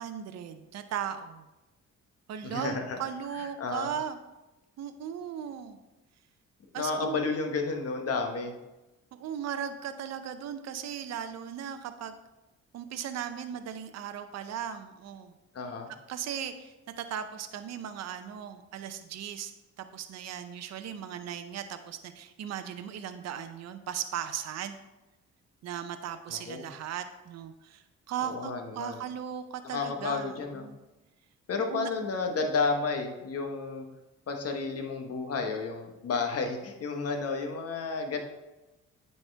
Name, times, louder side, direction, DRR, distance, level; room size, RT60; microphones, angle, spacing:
voice 1, 0.0-1.4 2.3-4.2 4.8-5.8 6.7-7.2 9.1-12.1 12.7-15.3 16.1-19.5 19.8-24.8 25.6-30.8 31.7-31.9, right 9 dB, 60° right, 8 dB, 0.6 m, -37 dB
voice 2, 2.4-3.0 3.3-3.9 6.7-8.5 15.5-15.9 26.3-26.6 28.2-29.0 29.6-30.7 31.5-33.9 34.3-38.2, left 4 dB, 50° left, 4 dB, 1.1 m, -32 dB
9.1 x 4.3 x 3.3 m, 1.0 s
cardioid pair, 90°, 30 cm